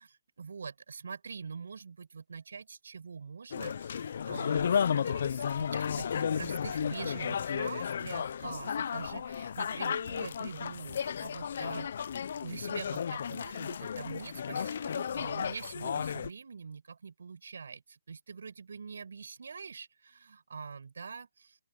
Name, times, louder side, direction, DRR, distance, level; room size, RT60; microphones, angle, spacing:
voice 1, 0.0-12.1 12.4-21.6, right 5 dB, 75° right, 7.1 m, -44 dB
sound 1, 3.5-16.3, left 7 dB, 60° left, 0.6 m, -33 dB
open air
hypercardioid pair, 145°, 0 cm